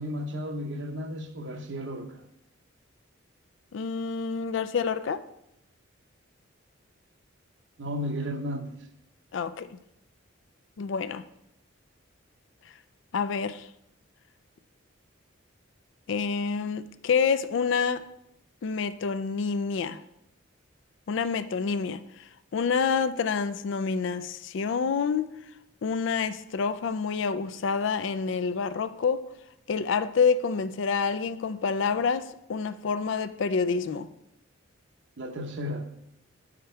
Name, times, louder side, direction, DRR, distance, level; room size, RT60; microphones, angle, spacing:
voice 1, 0.0-2.2 7.8-8.7 35.2-35.9, equal, 65° right, 0.8 m, -33 dB
voice 2, 3.7-5.2 9.3-9.8 10.8-11.2 13.1-13.7 16.1-18.0 18.6-20.0 21.1-22.0 22.5-25.3 25.8-29.2 29.7-34.1, left 5 dB, 65° left, 0.4 m, -27 dB
7.0 x 5.0 x 4.4 m
head